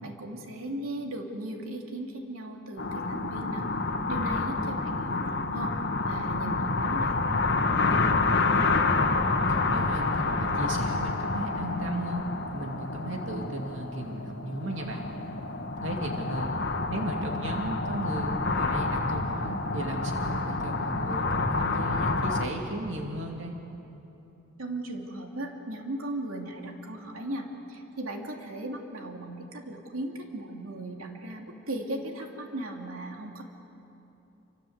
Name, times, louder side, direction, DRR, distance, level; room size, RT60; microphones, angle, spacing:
voice 1, 0.0-3.6 4.1-5.7 6.1-8.3 24.6-33.4, right 1 dB, 85° right, 1 dB, 2.9 m, -37 dB
sound 1, 2.8-22.4, left 3 dB, 55° left, 1.6 m, -28 dB
voice 2, 9.5-12.2 12.5-15.1 15.8-16.5 16.9-23.5, right 1 dB, 65° right, 1 dB, 2.6 m, -35 dB
28.5 x 25.0 x 8.1 m, 3.0 s
head